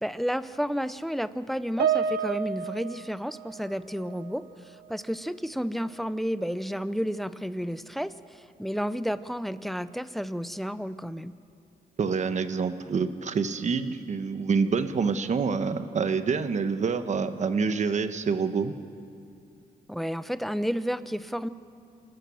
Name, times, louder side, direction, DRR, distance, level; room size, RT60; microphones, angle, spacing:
voice 1, 0.0-4.5 4.9-11.3 19.9-21.5, equal, ahead, 14 dB, 0.6 m, -31 dB
Piano, 1.8-4.4 4.7-5.0 5.8-5.9, right 7 dB, 80° right, 1.1 m, -30 dB
voice 2, 12.0-18.7, right 5 dB, 45° right, 10 dB, 1.1 m, -27 dB
27.5 x 13.5 x 7.0 m, 2.5 s
cardioid pair, 110°, 16 cm